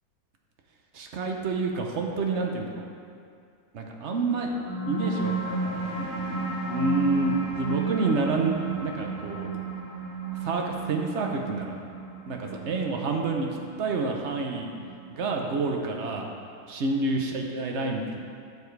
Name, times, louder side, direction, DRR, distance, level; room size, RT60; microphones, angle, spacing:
voice 1, 0.9-2.8 3.7-4.5 4.9-9.5 10.4-11.7 12.3-13.5 13.8-14.7 15.1-16.3 16.7-18.2, right 3 dB, 60° right, 1 dB, 0.7 m, -28 dB
sound 1, 4.2-15.2, right 4 dB, 25° left, 2.3 m, -33 dB
12.5 x 7.1 x 3.3 m, 2.3 s
omnidirectional pair, 2.3 m